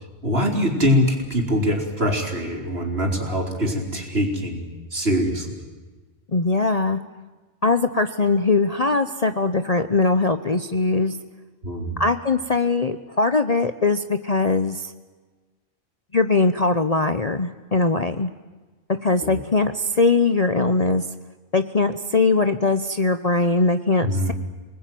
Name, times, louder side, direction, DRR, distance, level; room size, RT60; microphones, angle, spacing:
voice 1, 0.2-5.6 11.6-12.0 19.2-19.4 24.0-24.3, equal, 50° right, 3 dB, 4.2 m, -23 dB
voice 2, 6.3-7.0 7.6-11.1 12.0-14.9 16.1-18.3 19.0-21.0 21.5-24.3, left 3 dB, 35° left, 10 dB, 0.9 m, -21 dB
28.5 x 20.0 x 9.3 m, 1.3 s
omnidirectional pair, 1.3 m